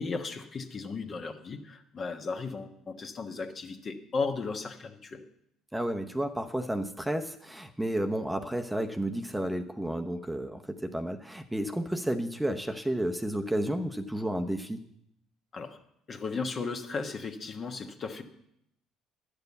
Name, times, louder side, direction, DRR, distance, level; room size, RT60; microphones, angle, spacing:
voice 1, 0.0-5.2 15.5-15.8 16.1-18.2, left 4 dB, 40° left, 5 dB, 1.3 m, -35 dB
voice 2, 5.7-14.8, right 1 dB, 5° right, 6 dB, 0.8 m, -32 dB
10.5 x 6.7 x 8.1 m, 0.76 s
hypercardioid pair, 65°, 0 cm